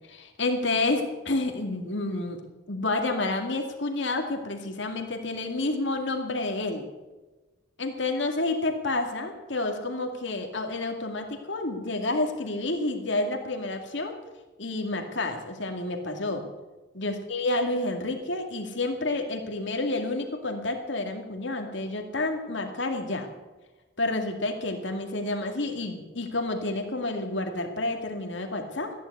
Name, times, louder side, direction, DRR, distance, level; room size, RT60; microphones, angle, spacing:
voice 1, 0.1-2.4 2.7-6.9 7.8-14.1 14.6-16.5 16.9-23.3 24.0-28.9, left 2 dB, 65° left, 4 dB, 2.2 m, -29 dB
14.5 x 10.5 x 8.1 m, 1.2 s
head